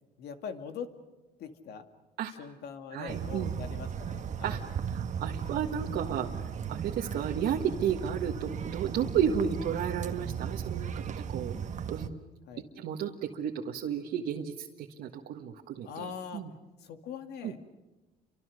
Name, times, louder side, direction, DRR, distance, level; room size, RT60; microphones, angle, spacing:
voice 1, 0.2-0.9 1.4-1.9 2.4-4.6 7.1-7.3 12.5-12.6 15.8-16.4 16.8-17.6, left 7 dB, 75° left, 7 dB, 2.2 m, -42 dB
voice 2, 2.9-3.5 4.4-6.4 6.7-11.5 11.9-12.1 12.7-16.5 17.4-17.5, right 8 dB, 75° right, 0 dB, 1.6 m, -33 dB
sound 1, 3.1-12.1, right 7 dB, 45° right, 1.3 m, -36 dB
30.0 x 25.0 x 6.5 m, 1.1 s
cardioid pair, 110°, 17 cm